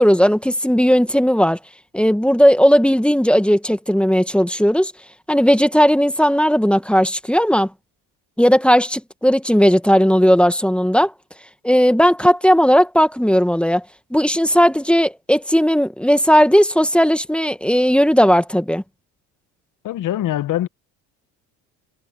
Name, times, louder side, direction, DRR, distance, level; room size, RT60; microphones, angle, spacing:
voice 1, 0.0-1.6 1.9-4.9 5.3-7.7 8.4-11.1 11.6-13.8 14.1-18.8, equal, 5° left, 1.8 m, -16 dB
voice 2, 19.8-20.7, left 13 dB, 50° left, 1.3 m, -23 dB
supercardioid pair, 80°, 39 cm